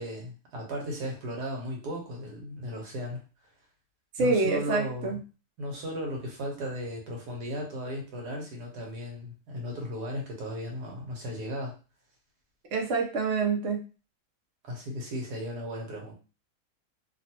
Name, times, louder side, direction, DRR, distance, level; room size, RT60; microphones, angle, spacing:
voice 1, 0.0-3.2 4.2-5.2 5.6-11.7 14.6-16.1, equal, 85° right, 0 dB, 1.5 m, -36 dB
voice 2, 4.2-5.2 12.7-13.8, right 3 dB, 55° right, 1 dB, 0.9 m, -26 dB
3.1 x 2.4 x 2.8 m, 0.34 s
omnidirectional pair, 1.7 m